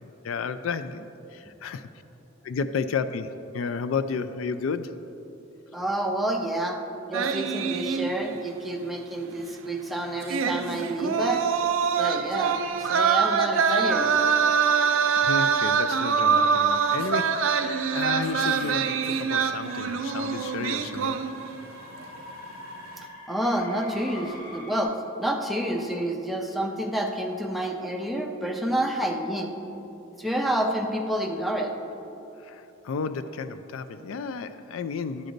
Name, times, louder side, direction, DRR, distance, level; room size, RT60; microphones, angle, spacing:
voice 1, 0.0-1.9 2.4-5.0 14.8-14.9 15.2-21.2 32.4-35.3, left 5 dB, 90° left, 11 dB, 0.4 m, -32 dB
voice 2, 5.7-6.8 7.1-11.4 12.0-14.2 23.3-29.5 30.2-31.7, right 1 dB, ahead, 1 dB, 0.6 m, -29 dB
sound 1, 7.1-8.5 8.8-8.9 10.2-21.7 22.0-22.3, right 6 dB, 90° right, 0.4 m, -24 dB
sound 2, 11.9-24.8, left 1 dB, 45° left, 1.2 m, -44 dB
11.0 x 6.5 x 3.9 m, 3.0 s
head